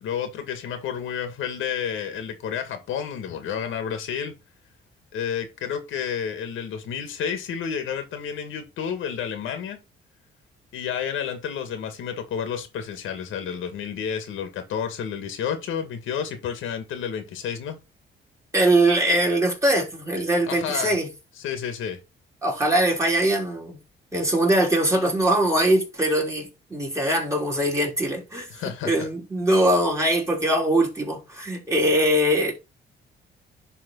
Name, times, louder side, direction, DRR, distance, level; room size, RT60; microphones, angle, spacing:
voice 1, 0.0-4.3 5.1-9.8 10.7-17.8 20.5-20.9 21.4-22.0 28.5-28.9, left 8 dB, 85° left, 1.9 m, -30 dB
voice 2, 18.5-21.1 22.4-23.8 24.1-28.5 28.8-32.5, right 1 dB, 15° right, 3.6 m, -22 dB
10.5 x 3.8 x 4.0 m
cardioid pair, 90°, 20 cm